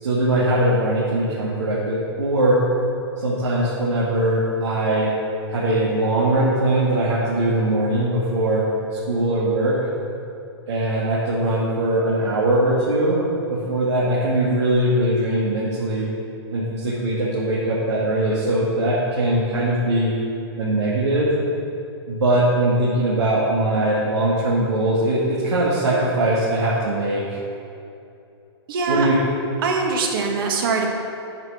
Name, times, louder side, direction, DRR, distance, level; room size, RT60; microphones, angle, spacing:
voice 1, 0.0-2.6 3.2-5.1 5.5-8.6 8.9-9.8 10.7-13.2 13.5-16.1 16.5-20.1 20.6-21.3 22.1-27.4 28.9-29.1, right 1 dB, 85° right, -7 dB, 2.2 m, -21 dB
voice 2, 28.7-29.1 29.6-30.9, right 4 dB, 55° right, 1 dB, 1.7 m, -22 dB
9.6 x 6.3 x 6.2 m, 2.7 s
hypercardioid pair, 150°, 14 cm